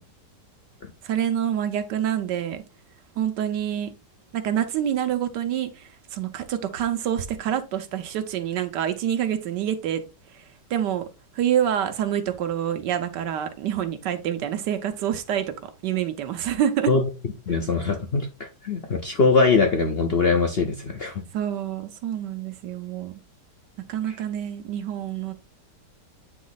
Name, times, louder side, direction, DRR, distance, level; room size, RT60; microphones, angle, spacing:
voice 1, 1.0-2.6 3.2-3.9 4.3-5.7 6.1-10.0 10.7-11.0 11.4-16.9 21.3-23.1 23.9-25.3, right 10 dB, 80° right, 1.4 m, -27 dB
voice 2, 17.5-21.2 24.1-24.2, left 4 dB, 55° left, 0.7 m, -22 dB
8.6 x 3.1 x 4.0 m
omnidirectional pair, 1.8 m